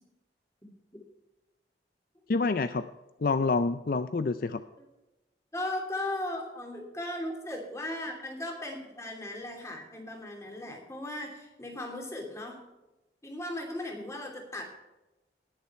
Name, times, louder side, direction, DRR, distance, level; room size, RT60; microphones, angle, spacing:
voice 1, 2.3-2.9 3.2-4.6, left 3 dB, 55° left, 11 dB, 0.5 m, -27 dB
voice 2, 5.5-12.7 13.2-14.6, left 1 dB, 15° left, 1 dB, 2.8 m, -37 dB
19.0 x 7.0 x 4.3 m, 1.0 s
head